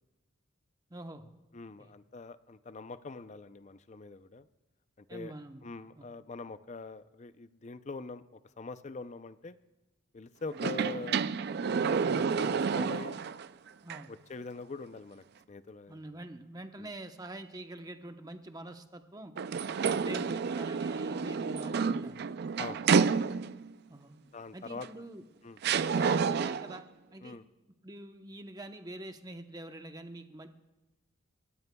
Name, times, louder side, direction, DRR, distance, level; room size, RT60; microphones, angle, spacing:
voice 1, 0.9-1.3 1.8-1.9 5.1-5.7 6.0-6.1 10.5-10.6 13.8-14.1 15.9-19.3 20.0-22.2 23.9-24.2 24.5-25.2 25.9-26.8 27.1-27.4 27.8-30.5, right 1 dB, 20° right, 6 dB, 0.9 m, -45 dB
voice 2, 1.5-4.5 5.1-5.3 5.6-8.2 8.6-9.6 10.1-11.2 11.6-13.2 14.1-16.2 16.8-16.9 22.6-22.8 24.3-24.9 25.4-25.6 27.2-27.4, left 3 dB, 35° left, 13 dB, 0.5 m, -43 dB
sound 1, 10.5-13.5 13.9-14.0 19.4-23.7 24.8-24.9 25.6-26.8, right 5 dB, 55° right, 0.4 m, -29 dB
27.5 x 13.0 x 2.3 m, 1.0 s
head